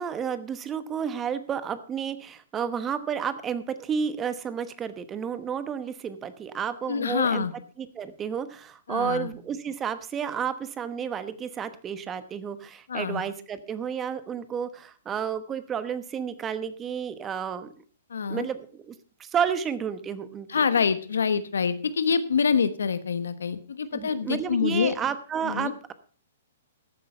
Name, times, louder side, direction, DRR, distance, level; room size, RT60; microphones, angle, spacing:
voice 1, 0.0-7.5 7.8-17.7 18.3-18.9 19.2-20.8 23.9-25.9, right 7 dB, 20° right, 13 dB, 1.0 m, -31 dB
voice 2, 6.9-7.5 8.9-9.3 12.9-13.2 18.1-18.5 20.5-25.0 25.4-25.7, left 6 dB, 80° left, 13 dB, 1.1 m, -26 dB
13.5 x 7.9 x 5.4 m, 0.43 s
hypercardioid pair, 130°, 0 cm